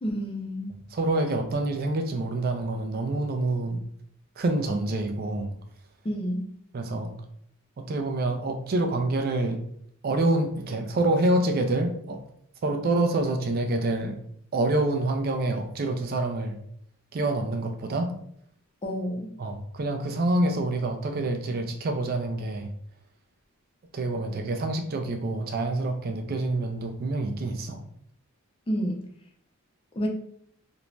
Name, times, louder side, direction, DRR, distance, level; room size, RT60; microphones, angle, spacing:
voice 1, 0.0-0.8 6.0-6.4 18.8-19.3 28.7-29.0 29.9-30.1, equal, 25° left, 1 dB, 0.4 m, -29 dB
voice 2, 0.9-3.8 4.4-5.5 6.7-7.1 7.8-9.6 10.0-12.2 12.6-14.2 14.5-16.6 17.1-18.1 19.4-22.7 23.9-27.8, right 2 dB, 45° right, 5 dB, 0.4 m, -27 dB
2.5 x 2.1 x 3.1 m, 0.67 s
head